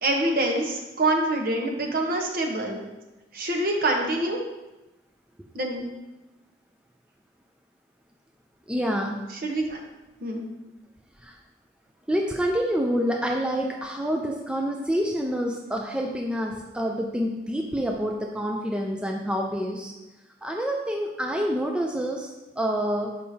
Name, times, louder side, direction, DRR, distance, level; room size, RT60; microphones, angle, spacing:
voice 1, 0.0-2.8 3.3-4.4 5.5-5.8 9.4-9.8 10.2-10.5, right 1 dB, 50° right, 1 dB, 0.9 m, -25 dB
voice 2, 8.7-9.2 11.2-11.4 12.1-19.9 20.4-23.1, equal, 5° right, 0 dB, 0.4 m, -27 dB
6.7 x 5.5 x 2.7 m, 1.0 s
head